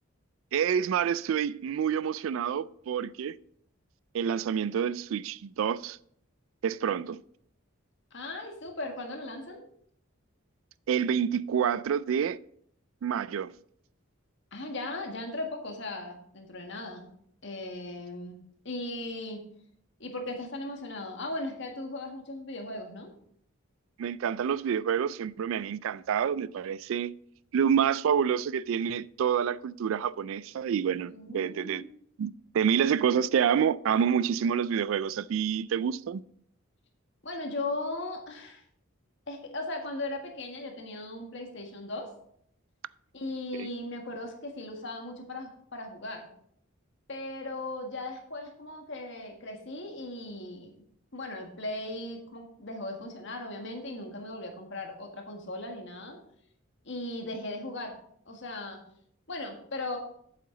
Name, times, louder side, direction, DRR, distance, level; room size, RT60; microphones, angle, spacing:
voice 1, 0.5-3.3 4.1-6.0 6.6-7.2 10.9-12.4 13.0-13.5 24.0-27.1 27.5-31.8 32.2-36.2 43.5-43.7, right 8 dB, 70° right, 0.3 m, -28 dB
voice 2, 8.1-9.6 14.5-17.1 17.4-18.4 18.6-19.4 20.0-23.1 31.1-31.8 37.2-38.6 39.3-42.1 43.1-46.3 47.1-50.7 51.1-56.2 56.8-57.9 58.2-58.8 59.3-60.0, left 2 dB, 60° left, 1.6 m, -37 dB
8.4 x 7.8 x 3.8 m
head